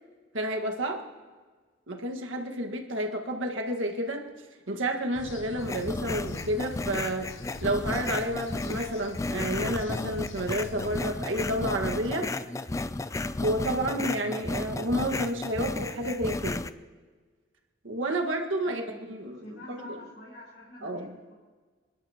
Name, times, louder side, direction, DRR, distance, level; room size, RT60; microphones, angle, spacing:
voice 1, 0.3-1.0 1.9-4.2 4.7-7.3 7.6-12.3 13.4-16.6 17.8-18.8 19.1-19.8 20.8-21.1, right 1 dB, 80° right, 2 dB, 1.8 m, -30 dB
sound 1, 5.1-11.0, left 3 dB, 70° left, 0.8 m, -44 dB
sound 2, 5.6-16.7, left 2 dB, 15° left, 0.3 m, -33 dB
voice 2, 18.6-21.3, left 1 dB, 50° left, -7 dB, 3.6 m, -47 dB
28.0 x 11.5 x 3.0 m, 1.4 s
head